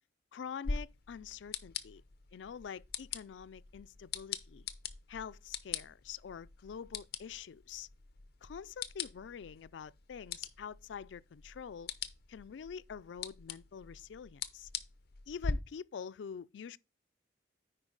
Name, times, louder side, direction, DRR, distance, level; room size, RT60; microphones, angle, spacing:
voice 1, 0.3-2.0 2.3-4.7 5.1-7.9 8.4-11.9 12.3-14.7 15.3-16.8, left 7 dB, 85° left, 0.4 m, -46 dB
sound 1, 0.6-15.5, left 5 dB, 60° left, 0.7 m, -43 dB
9.9 x 4.3 x 3.9 m
head